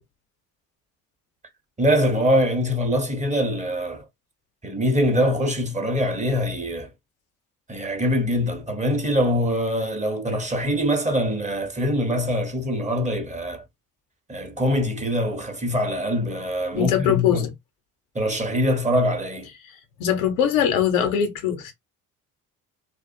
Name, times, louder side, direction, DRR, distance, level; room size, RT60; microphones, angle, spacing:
voice 1, 1.8-4.1 4.6-6.9 7.7-13.6 14.3-17.5 18.1-19.5, equal, 15° right, 0.8 m, -23 dB
voice 2, 16.8-17.5 20.0-21.7, left 9 dB, 85° left, 0.7 m, -21 dB
2.4 x 2.1 x 2.4 m
hypercardioid pair, 50°, 41 cm